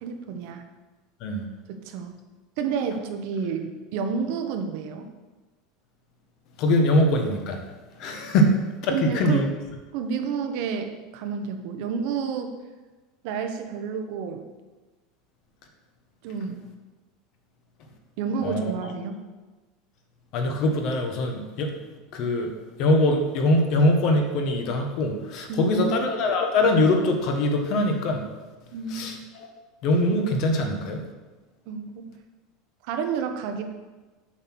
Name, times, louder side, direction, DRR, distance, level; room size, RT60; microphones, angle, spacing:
voice 1, 0.0-0.6 1.7-2.1 2.6-5.1 8.9-9.5 9.9-12.5 13.2-14.5 16.2-16.6 18.2-19.3 25.5-25.9 28.7-29.1 31.7-32.1 32.8-33.7, right 6 dB, 50° right, 6 dB, 1.0 m, -30 dB
voice 2, 6.6-7.6 8.0-8.6 8.8-9.4 18.4-18.7 20.3-21.7 22.1-22.5 22.8-28.2 28.9-29.5 29.8-31.0, left 1 dB, 40° left, 4 dB, 1.2 m, -22 dB
7.3 x 6.6 x 6.2 m, 1.3 s
supercardioid pair, 180°, 0 cm